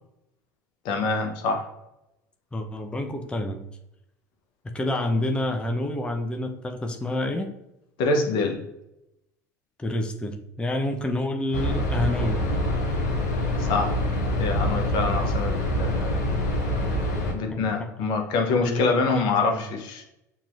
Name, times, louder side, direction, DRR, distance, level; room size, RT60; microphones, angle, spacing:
voice 1, 0.8-1.7 8.0-8.6 13.6-14.0 14.3-16.1 17.3-20.0, left 3 dB, 55° left, 5 dB, 0.9 m, -25 dB
voice 2, 2.5-3.6 4.7-7.5 9.8-12.4 17.5-17.7 18.5-19.5, left 1 dB, 10° left, 4 dB, 0.6 m, -28 dB
sound 1, 11.5-17.3, left 1 dB, 70° left, 1.1 m, -25 dB
7.1 x 2.9 x 2.5 m, 0.87 s
figure-of-eight pair, 70°, 9 cm